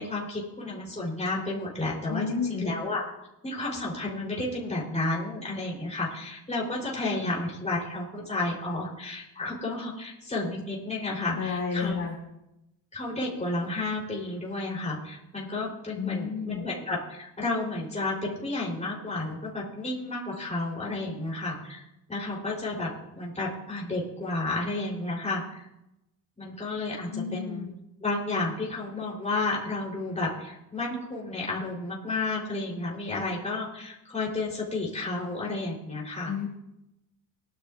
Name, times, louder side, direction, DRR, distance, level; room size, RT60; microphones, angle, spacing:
voice 1, 0.0-3.0 3.4-11.9 12.9-21.8 22.1-25.6 26.4-27.7 28.0-36.3, left 2 dB, 15° left, -4 dB, 3.6 m, -32 dB
voice 2, 2.1-2.7 7.2-7.3 11.4-12.2 15.9-16.6 27.1-27.7 36.2-36.5, left 6 dB, 45° left, -2 dB, 2.7 m, -31 dB
20.0 x 11.5 x 2.5 m, 0.88 s
wide cardioid pair, 170°, 42 cm